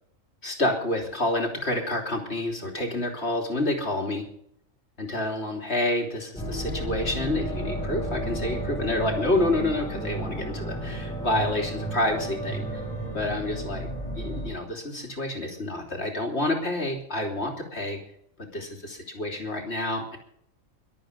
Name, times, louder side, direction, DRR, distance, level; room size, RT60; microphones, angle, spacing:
voice 1, 0.4-4.3 5.0-12.8 13.1-13.9 14.2-18.0 18.5-20.2, left 1 dB, 50° left, 2 dB, 3.4 m, -28 dB
sound 1, 6.4-14.5, right 1 dB, 5° left, 6.2 m, -32 dB
23.0 x 8.6 x 5.2 m, 0.69 s
omnidirectional pair, 1.4 m